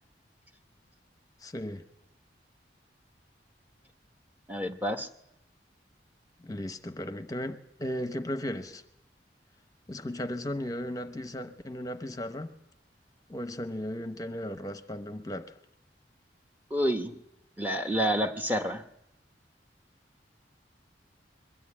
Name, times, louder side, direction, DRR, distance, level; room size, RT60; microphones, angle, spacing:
voice 1, 1.4-1.8 6.4-8.8 9.9-12.5 13.3-15.6, left 1 dB, 20° left, 9 dB, 0.8 m, -36 dB
voice 2, 4.5-5.1 16.7-17.1 17.6-18.8, equal, 10° right, 6 dB, 1.0 m, -28 dB
22.0 x 13.5 x 8.6 m, 0.87 s
head